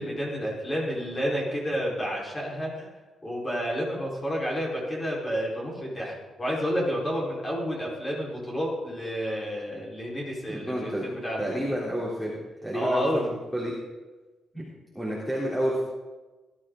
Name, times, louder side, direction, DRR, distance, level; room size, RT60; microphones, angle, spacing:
voice 1, 0.0-2.9 3.2-11.4 12.7-13.2, equal, 20° left, -4 dB, 4.2 m, -30 dB
voice 2, 10.5-13.7 14.5-14.6 14.9-15.8, equal, 5° left, -6 dB, 3.3 m, -30 dB
19.5 x 13.0 x 3.8 m, 1.2 s
cardioid pair, 160°, 0 cm